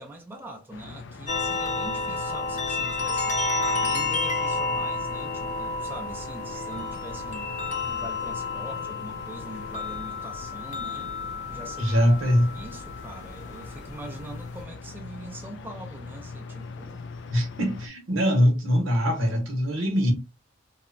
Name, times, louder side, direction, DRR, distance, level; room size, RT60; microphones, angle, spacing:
voice 1, 0.0-3.4 3.8-11.1 11.5-12.0 12.5-17.0, right 1 dB, 10° right, 0.5 m, -43 dB
sound 1, 0.7-17.9, left 4 dB, 60° left, 0.3 m, -42 dB
sound 2, 1.3-14.6, left 3 dB, 35° left, 0.7 m, -31 dB
voice 2, 11.8-12.5 17.3-20.1, equal, 80° right, 0.9 m, -22 dB
2.8 x 2.1 x 2.5 m
head